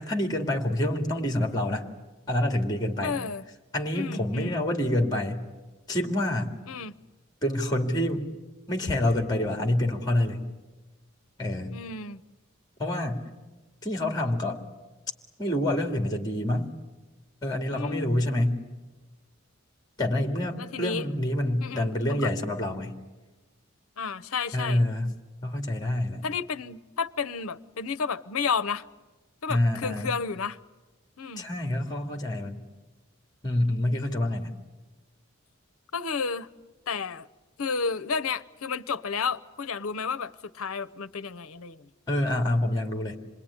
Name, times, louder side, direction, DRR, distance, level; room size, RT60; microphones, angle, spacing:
voice 1, 0.0-1.8 2.3-3.2 3.7-5.5 5.9-6.6 7.4-8.3 8.7-10.5 11.4-11.8 12.8-13.2 13.8-14.6 15.4-16.7 17.4-18.6 20.0-22.9 24.5-25.1 25.4-26.2 29.5-30.1 31.4-32.6 33.4-34.5 42.1-43.2, left 1 dB, 20° left, 2.3 m, -27 dB
voice 2, 3.0-3.4 3.9-4.6 6.7-6.9 11.7-12.2 17.8-18.1 20.6-21.0 21.6-22.3 24.0-24.8 26.2-28.8 29.4-30.6 31.2-31.4 35.9-36.5 36.9-37.3 37.6-41.9, left 5 dB, 90° left, 0.8 m, -31 dB
27.5 x 21.0 x 9.8 m
head